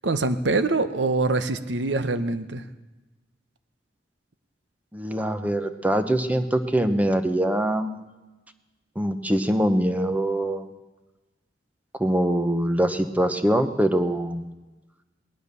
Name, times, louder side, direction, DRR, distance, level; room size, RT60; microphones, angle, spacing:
voice 1, 0.0-2.6, right 3 dB, 75° right, 11 dB, 0.9 m, -24 dB
voice 2, 4.9-7.9 9.0-10.7 12.0-14.5, right 1 dB, 10° right, 8 dB, 0.9 m, -23 dB
18.5 x 11.5 x 6.8 m, 1.2 s
head